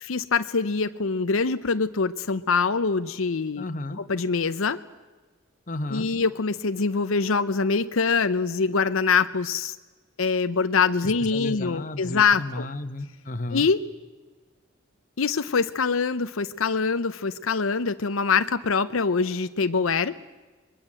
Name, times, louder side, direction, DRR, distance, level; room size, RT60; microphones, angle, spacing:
voice 1, 0.0-3.7 4.1-4.8 5.9-9.8 10.2-12.7 13.5-13.8 15.2-20.2, left 5 dB, 80° left, 10 dB, 0.7 m, -24 dB
voice 2, 3.6-4.0 5.7-6.1 11.0-13.7, left 2 dB, 40° left, 8 dB, 1.3 m, -33 dB
27.0 x 22.0 x 7.6 m, 1.3 s
head